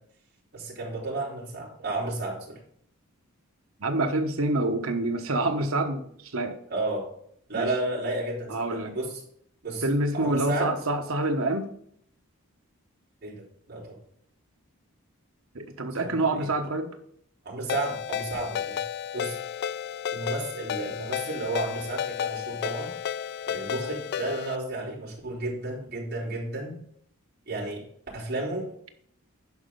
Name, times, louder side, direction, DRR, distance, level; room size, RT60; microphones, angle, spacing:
voice 1, 0.5-2.6 6.7-7.1 7.5-9.2 9.6-9.8 10.1-10.7 13.2-14.0 16.0-16.5 17.4-18.8 19.1-19.4 20.1-22.9 23.5-26.8 27.5-27.8 28.1-28.7, right 2 dB, 50° right, -6 dB, 4.0 m, -32 dB
voice 2, 3.8-6.6 7.5-7.7 8.5-8.9 9.8-11.7 15.5-16.9, right 2 dB, 75° right, 5 dB, 1.2 m, -27 dB
Ringtone, 17.7-24.6, left 9 dB, 50° left, 0.3 m, -32 dB
11.0 x 5.3 x 3.9 m, 0.66 s
head